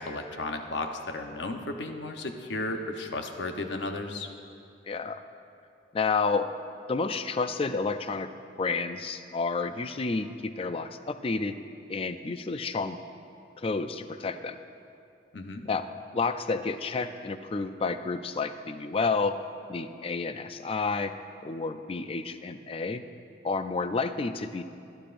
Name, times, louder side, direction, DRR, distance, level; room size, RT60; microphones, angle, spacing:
voice 1, 0.0-4.3 15.3-15.6, left 2 dB, 70° left, 4 dB, 0.9 m, -34 dB
voice 2, 4.9-5.2 5.9-6.5 6.9-8.3 8.6-11.6 11.9-13.0 13.6-14.6 15.7-15.8 16.1-19.4 19.7-21.1 21.4-23.0 23.4-24.6, left 4 dB, 30° left, 10 dB, 0.4 m, -30 dB
20.5 x 11.5 x 2.5 m, 2.5 s
head